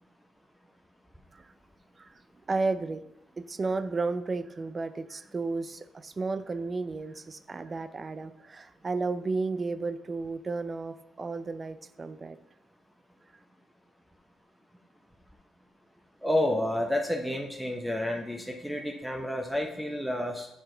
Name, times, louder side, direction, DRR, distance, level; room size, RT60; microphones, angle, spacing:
voice 1, 2.5-3.0 3.4-12.4, right 3 dB, 30° right, 12 dB, 0.5 m, -33 dB
voice 2, 16.2-20.5, left 1 dB, 5° right, 3 dB, 0.8 m, -30 dB
7.8 x 4.6 x 3.8 m, 0.84 s
cardioid pair, 90°, 0 cm